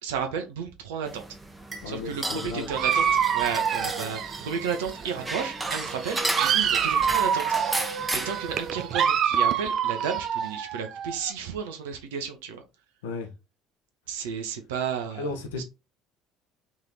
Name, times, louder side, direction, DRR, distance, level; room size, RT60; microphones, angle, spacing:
voice 1, 0.0-1.2 1.9-3.0 3.3-7.4 8.2-12.6 14.1-15.3 15.6-15.7, right 6 dB, 70° right, 0.9 m, -32 dB
sound 1, 1.0-8.7, right 2 dB, 10° right, 1.0 m, -34 dB
voice 2, 1.8-2.7 13.0-13.3 15.1-15.6, left 3 dB, 70° left, 1.1 m, -34 dB
Dog, 2.7-5.1 5.4-11.3, right 8 dB, 50° right, 0.5 m, -26 dB
3.6 x 3.4 x 4.3 m
figure-of-eight pair, 60°, 0 cm